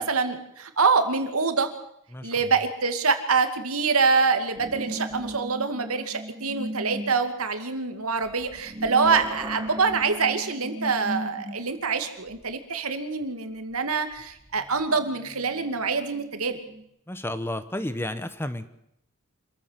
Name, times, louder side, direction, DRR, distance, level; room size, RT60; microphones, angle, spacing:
voice 1, 0.0-1.7 2.2-16.6, right 4 dB, 85° right, 8 dB, 2.4 m, -25 dB
sound 1, 4.5-7.2 8.2-11.9 12.4-12.5 14.3-16.8, right 1 dB, 20° right, 5.8 m, -37 dB
voice 2, 17.1-18.7, left 1 dB, 10° left, 12 dB, 1.0 m, -32 dB
26.5 x 14.5 x 7.6 m, 0.78 s
head